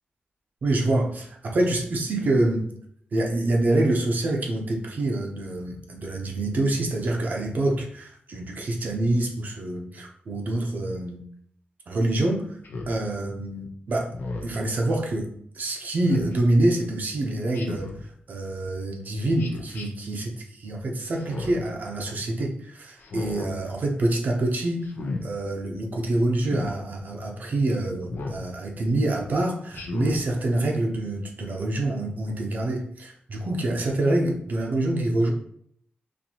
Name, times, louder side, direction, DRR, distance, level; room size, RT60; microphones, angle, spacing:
voice 1, 0.6-2.7 3.1-11.2 11.9-12.5 12.9-14.1 14.4-15.3 15.5-24.9 25.2-35.3, right 2 dB, 55° right, 1 dB, 0.7 m, -26 dB
Speech synthesizer, 12.6-13.0 14.1-14.6 16.0-16.3 17.5-18.0 19.4-19.9 21.2-21.7 23.0-23.5 24.8-25.2 26.4-26.7 28.1-28.4 29.7-30.2, left 3 dB, 80° left, 0.6 m, -34 dB
4.2 x 2.6 x 2.8 m, 0.65 s
wide cardioid pair, 125°, 3 cm